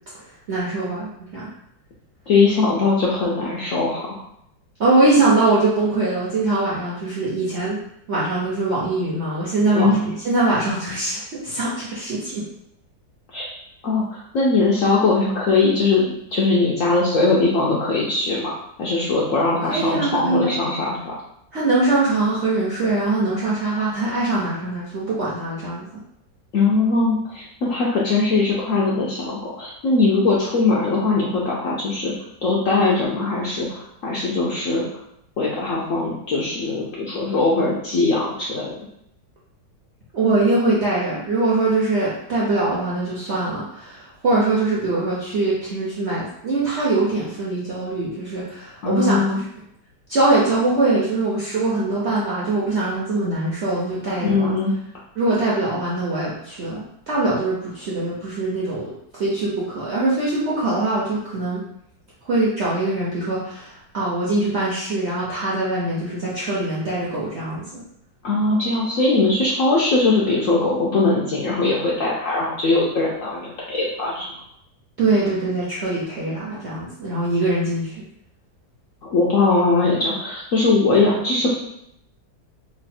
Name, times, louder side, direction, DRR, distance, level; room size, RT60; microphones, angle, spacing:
voice 1, 0.5-1.5 4.8-7.8 8.1-12.5 19.6-20.5 21.5-25.8 40.1-49.4 50.1-54.6 55.2-61.6 62.3-67.8 75.0-78.0, right 2 dB, 60° right, -6 dB, 0.7 m, -22 dB
voice 2, 2.3-4.2 9.7-10.0 13.3-13.5 13.8-16.0 16.3-18.5 18.8-21.1 26.5-32.1 32.4-34.8 35.4-38.7 48.8-49.4 54.2-54.7 68.2-74.3 79.0-81.5, left 3 dB, 70° left, -4 dB, 0.8 m, -20 dB
3.1 x 2.3 x 4.1 m, 0.75 s
omnidirectional pair, 1.9 m